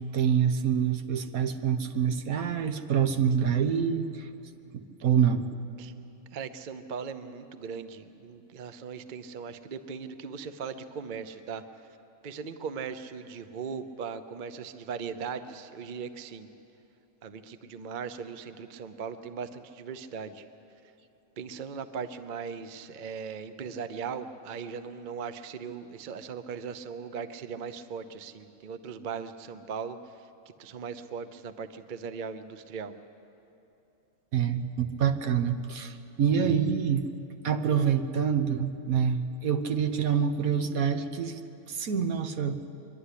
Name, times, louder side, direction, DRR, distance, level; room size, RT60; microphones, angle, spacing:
voice 1, 0.0-4.3 4.7-5.5 34.3-37.0 37.4-41.4 41.7-42.6, right 7 dB, 80° right, 8 dB, 1.4 m, -26 dB
voice 2, 6.3-11.6 12.2-16.5 17.2-20.4 21.4-30.2 30.6-32.9, right 6 dB, 45° right, 10 dB, 0.7 m, -39 dB
23.5 x 11.5 x 9.9 m, 2.8 s
omnidirectional pair, 1.5 m